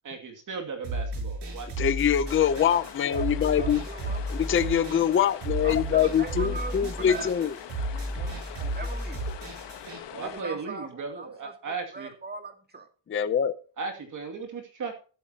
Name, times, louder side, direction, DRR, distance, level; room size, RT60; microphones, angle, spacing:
voice 1, 0.0-1.7 10.1-12.1 13.8-14.9, right 4 dB, 40° right, 2.5 m, -36 dB
sound 1, 0.8-10.0, right 1 dB, 60° right, 7.0 m, -34 dB
voice 2, 1.8-3.8 4.3-7.5 13.1-13.5, left 9 dB, 25° left, 0.6 m, -24 dB
sound 2, 2.2-10.4, left 10 dB, 60° left, 1.3 m, -43 dB
voice 3, 3.5-4.7 5.6-7.5 7.8-9.3 10.1-12.9, right 3 dB, 20° right, 2.0 m, -41 dB
12.5 x 12.5 x 2.9 m
cardioid pair, 175°, 47 cm